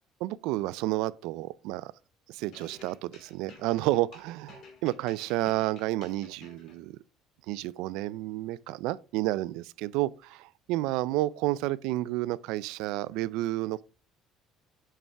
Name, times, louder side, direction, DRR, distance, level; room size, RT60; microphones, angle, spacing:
voice 1, 0.2-1.9 2.3-7.0 7.5-13.8, right 17 dB, 85° right, 0.4 m, -31 dB
sound 1, 2.5-6.8, left 4 dB, 50° left, 2.0 m, -53 dB
7.3 x 5.5 x 3.3 m
cardioid pair, 155°, 0 cm